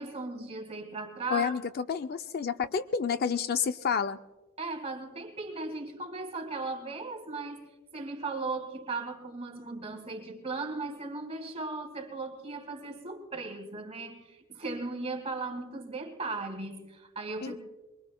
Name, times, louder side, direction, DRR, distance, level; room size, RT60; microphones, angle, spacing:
voice 1, 0.0-1.5 4.6-17.6, right 3 dB, 30° right, 4 dB, 1.7 m, -37 dB
voice 2, 1.3-4.2 17.4-17.6, left 6 dB, 45° left, 10 dB, 0.4 m, -30 dB
23.0 x 23.0 x 2.2 m, 1.2 s
head